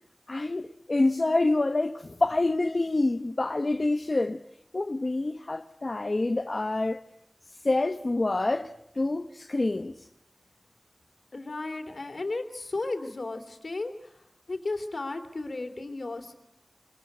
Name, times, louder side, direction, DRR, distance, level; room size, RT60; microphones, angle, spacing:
voice 1, 0.3-4.4 4.7-7.0 7.6-8.7 8.9-10.1, left 2 dB, 65° left, 0.9 m, -27 dB
voice 2, 11.3-16.3, left 2 dB, 85° left, 3.1 m, -34 dB
25.0 x 20.0 x 9.5 m
wide cardioid pair, 40°, 0 cm